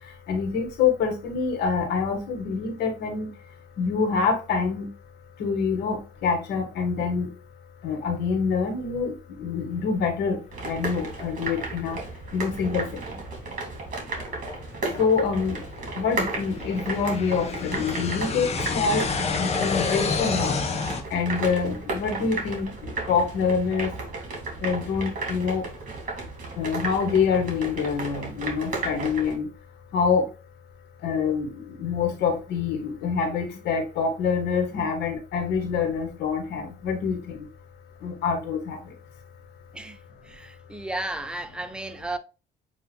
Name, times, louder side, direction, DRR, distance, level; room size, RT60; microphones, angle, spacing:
voice 1, 0.3-3.3 3.8-4.9 5.4-7.3 7.8-12.0 12.3-12.9 15.0-15.6 16.0-19.0 19.4-20.6 21.1-23.9 24.6-25.7 26.6-29.5 29.9-30.2 31.0-37.4 38.0-38.8, left 5 dB, 80° left, 1.6 m, -26 dB
sound 1, 10.5-29.3, right 3 dB, 50° right, 1.9 m, -34 dB
sound 2, 12.2-12.3 12.9-13.0 13.6-21.0, left 5 dB, 40° left, 0.9 m, -29 dB
voice 2, 40.2-42.2, right 2 dB, 5° right, 0.6 m, -33 dB
8.0 x 2.7 x 2.2 m
cardioid pair, 100°, 17 cm